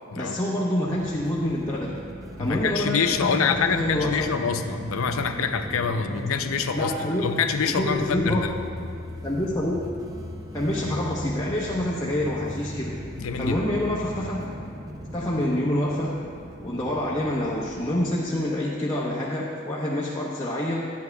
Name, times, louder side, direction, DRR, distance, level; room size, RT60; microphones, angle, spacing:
voice 1, 0.2-2.0 2.4-4.3 6.7-8.5 8.8-8.9 9.2-9.9 10.5-13.0 13.4-14.5 15.1-16.2 16.6-20.9, left 1 dB, 15° left, -7 dB, 1.0 m, -27 dB
sound 1, 0.9-18.2, equal, 15° right, 0.6 m, -39 dB
voice 2, 2.4-8.5 13.2-13.6, left 6 dB, 85° left, 7 dB, 0.6 m, -26 dB
sound 2, 6.8-16.6 16.9-17.0, left 2 dB, 45° left, 0.4 m, -43 dB
14.0 x 9.4 x 2.3 m, 2.4 s
head